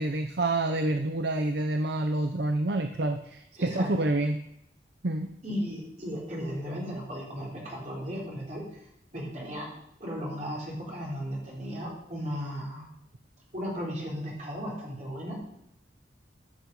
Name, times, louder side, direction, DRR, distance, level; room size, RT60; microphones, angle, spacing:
voice 1, 0.0-4.4 5.0-5.3, right 2 dB, 60° right, 7 dB, 0.6 m, -28 dB
voice 2, 3.6-3.9 5.4-8.6 9.1-9.7 10.0-12.9 13.5-15.4, equal, 40° right, -3 dB, 3.6 m, -35 dB
14.0 x 6.1 x 5.3 m, 0.78 s
head